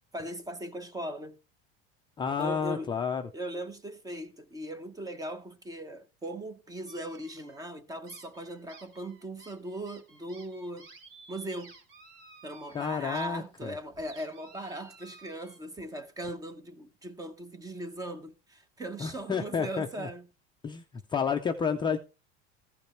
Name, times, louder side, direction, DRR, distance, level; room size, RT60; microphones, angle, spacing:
voice 1, 0.1-1.4 2.4-2.9 3.3-10.9 11.3-11.7 12.4-20.3, right 1 dB, 10° right, 0.9 m, -39 dB
voice 2, 2.2-3.3 12.7-13.7 19.0-20.1 20.6-22.0, left 6 dB, 15° left, 0.6 m, -31 dB
sound 1, 6.9-7.7 8.1-13.3 13.6-15.6, right 4 dB, 45° right, 3.0 m, -54 dB
15.0 x 5.2 x 4.4 m
cardioid pair, 155°, 29 cm